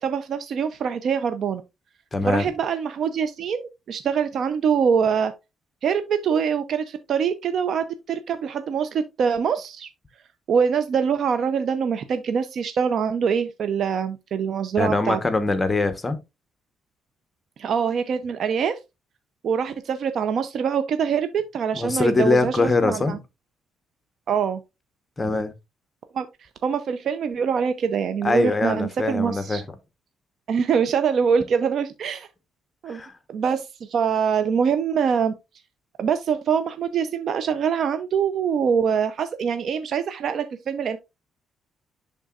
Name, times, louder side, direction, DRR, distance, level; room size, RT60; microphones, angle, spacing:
voice 1, 0.0-1.6 2.2-5.3 5.8-9.9 10.5-15.2 17.6-18.8 19.4-23.2 24.3-24.6 26.1-29.6 30.5-32.3 32.8-33.0 33.3-35.3 36.0-41.0, right 7 dB, 65° right, 0.6 m, -24 dB
voice 2, 2.1-2.4 14.8-16.2 21.7-23.2 25.2-25.5 28.2-29.6 32.9-33.1, left 3 dB, 25° left, 1.0 m, -22 dB
11.0 x 3.8 x 2.4 m
cardioid pair, 90°, 0 cm